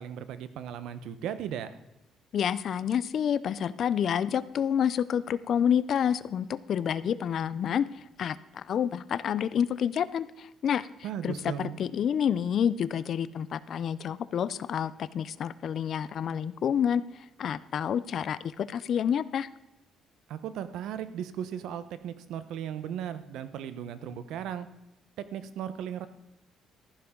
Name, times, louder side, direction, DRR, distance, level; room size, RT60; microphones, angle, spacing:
voice 1, 0.0-1.7 11.0-11.8 20.3-24.7 25.2-26.1, right 9 dB, 75° right, 12 dB, 0.9 m, -36 dB
voice 2, 2.3-7.9 8.2-10.9 11.2-17.0 17.4-19.5, left 8 dB, 45° left, 17 dB, 0.4 m, -28 dB
14.0 x 11.5 x 3.8 m, 0.95 s
cardioid pair, 175°, 0 cm